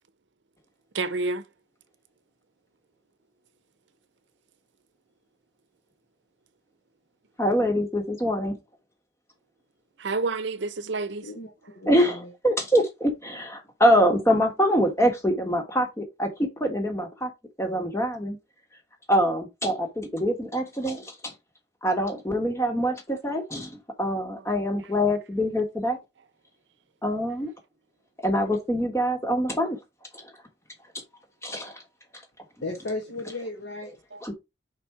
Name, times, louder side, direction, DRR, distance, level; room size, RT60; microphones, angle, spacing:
voice 1, 0.9-1.5 10.0-11.3 24.4-24.5 34.1-34.2, right 3 dB, 70° right, 0.7 m, -29 dB
voice 2, 7.4-8.6 11.9-17.3 17.6-18.4 19.1-21.3 21.8-26.0 27.0-27.5 28.2-29.8 31.4-31.8 34.2-34.3, equal, 15° left, 1.4 m, -24 dB
voice 3, 11.2-12.3 32.6-34.0, left 2 dB, 70° left, 1.3 m, -35 dB
5.1 x 4.3 x 4.6 m
head